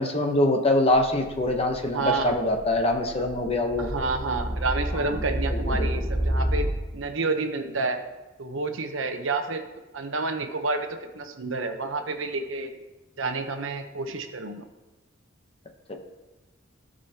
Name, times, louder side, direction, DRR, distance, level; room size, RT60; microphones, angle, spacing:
voice 1, 0.0-3.9 5.1-5.2 5.5-5.9 15.9-16.0, left 1 dB, 30° left, 3 dB, 0.9 m, -24 dB
sound 1, 1.1-6.7, right 1 dB, ahead, 2.3 m, -29 dB
voice 2, 1.9-2.4 3.8-6.7 6.9-8.0 8.4-9.6 9.9-10.9 11.1-12.7 13.2-14.6, right 3 dB, 75° right, 6 dB, 0.9 m, -29 dB
15.0 x 5.3 x 2.9 m, 1.1 s
head